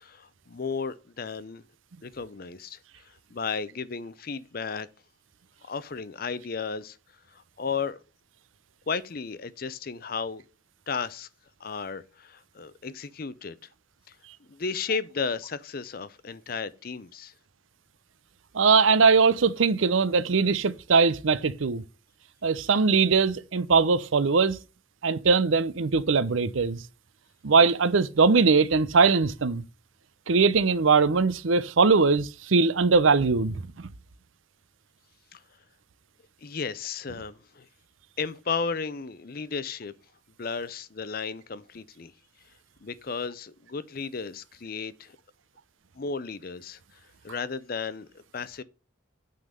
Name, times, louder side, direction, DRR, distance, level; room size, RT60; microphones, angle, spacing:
voice 1, 0.0-1.6 2.0-4.9 5.7-7.0 7.3-8.0 8.9-10.4 10.9-11.3 11.6-13.6 14.1-14.2 14.5-17.3 35.3-35.4 36.4-37.7 38.2-39.9 40.4-42.1 42.8-45.2 46.0-48.6, left 5 dB, 50° left, 0.5 m, -34 dB
voice 2, 18.5-21.8 22.4-24.6 25.0-26.8 27.4-29.6 30.3-33.6, right 4 dB, 80° right, 0.6 m, -21 dB
9.3 x 3.9 x 6.7 m
head